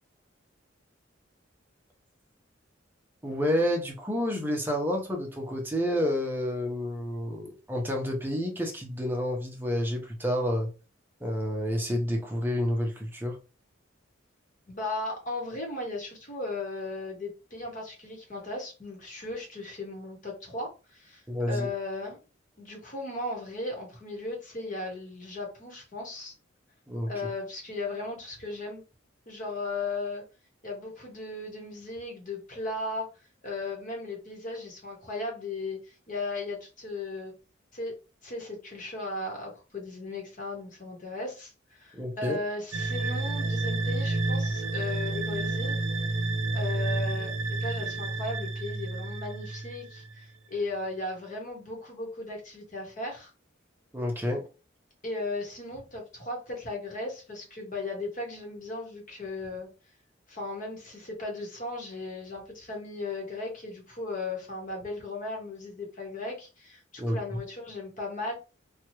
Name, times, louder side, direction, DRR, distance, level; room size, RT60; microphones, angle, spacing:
voice 1, 3.2-10.7 11.2-13.4 21.3-21.7 26.9-27.1 41.9-42.4 53.9-54.4 67.0-67.2, equal, 10° right, 0.7 m, -29 dB
voice 2, 14.7-22.2 22.6-26.3 27.1-28.8 29.3-30.2 30.6-33.1 33.4-37.3 37.7-37.9 38.2-45.8 46.5-53.3 55.0-59.7 60.3-68.4, left 2 dB, 45° left, 1.1 m, -36 dB
sound 1, 42.7-50.2, right 2 dB, 75° right, 0.5 m, -30 dB
2.9 x 2.3 x 3.0 m
head